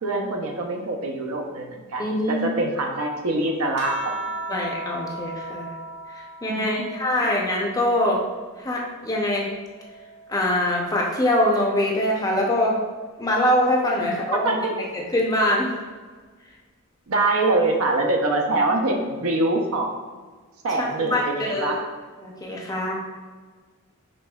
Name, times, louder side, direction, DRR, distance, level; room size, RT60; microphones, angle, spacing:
voice 1, 0.0-4.6 6.5-6.9 14.3-14.7 17.1-19.9 20.6-21.9, right 2 dB, 75° right, 2 dB, 0.6 m, -24 dB
voice 2, 2.0-2.5 4.5-5.7 6.4-8.2 8.6-9.5 10.3-12.8 13.2-14.5 14.9-15.7 20.8-21.7 22.2-22.9, left 1 dB, 15° left, -1 dB, 0.5 m, -23 dB
sound 1, 3.8-8.6 9.0-10.8 12.0-12.5, right 1 dB, 50° right, 0.8 m, -37 dB
5.2 x 3.6 x 2.3 m, 1.5 s
head